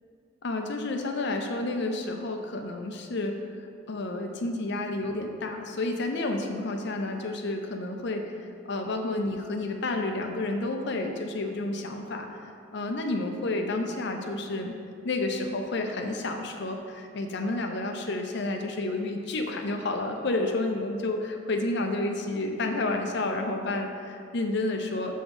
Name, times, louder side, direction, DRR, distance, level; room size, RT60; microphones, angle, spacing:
voice 1, 0.4-3.4 3.9-8.3 8.7-12.3 12.7-14.7 15.0-25.1, left 2 dB, 60° left, 4 dB, 0.7 m, -30 dB
7.2 x 3.5 x 6.2 m, 2.5 s
head